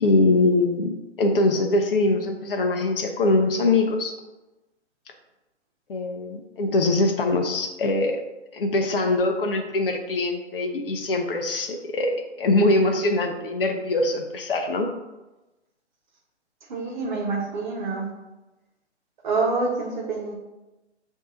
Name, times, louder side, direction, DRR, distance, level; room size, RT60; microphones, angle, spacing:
voice 1, 0.0-4.2 5.9-8.2 8.5-14.9, left 2 dB, 50° left, 4 dB, 0.6 m, -23 dB
voice 2, 16.7-18.1 19.2-20.3, right 3 dB, 40° right, -1 dB, 1.0 m, -26 dB
6.7 x 2.7 x 2.5 m, 1.0 s
figure-of-eight pair, 130°, 35 cm